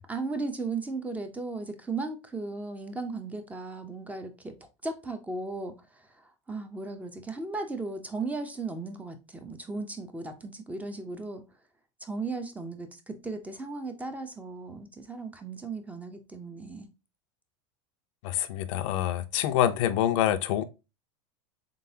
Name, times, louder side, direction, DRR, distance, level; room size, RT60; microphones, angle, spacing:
voice 1, 0.0-4.5 4.8-11.4 12.0-16.9, right 3 dB, 10° right, 0.7 m, -36 dB
voice 2, 18.2-20.6, left 11 dB, 70° left, 0.5 m, -26 dB
3.9 x 3.5 x 2.7 m
supercardioid pair, 120°, 17 cm